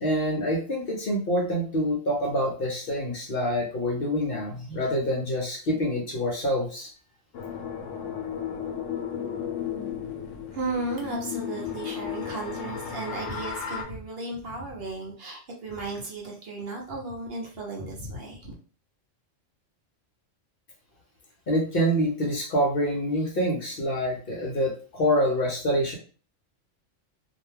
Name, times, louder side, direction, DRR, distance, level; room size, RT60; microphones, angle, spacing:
voice 1, 0.0-6.9 21.5-26.0, equal, 55° left, -1 dB, 0.8 m, -26 dB
sound 1, 7.3-13.8, left 8 dB, 85° left, 1.0 m, -34 dB
voice 2, 10.5-18.5, right 2 dB, 55° right, -1 dB, 0.8 m, -34 dB
2.6 x 2.2 x 3.2 m, 0.40 s
omnidirectional pair, 1.3 m